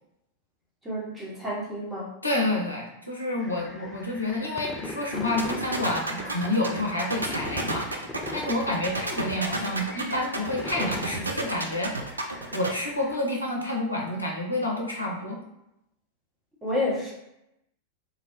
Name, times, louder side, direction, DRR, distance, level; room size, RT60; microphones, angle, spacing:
voice 1, 0.8-2.1 16.6-17.1, left 1 dB, 15° right, -5 dB, 0.9 m, -29 dB
voice 2, 2.2-7.9 8.3-11.9 12.5-15.4, left 1 dB, 85° left, -2 dB, 0.5 m, -29 dB
sound 1, 3.4-13.2, left 1 dB, 10° left, 0.3 m, -40 dB
sound 2, 5.4-12.7, right 2 dB, 80° right, 0.3 m, -31 dB
2.5 x 2.0 x 2.6 m, 0.86 s
figure-of-eight pair, 90°, 0 cm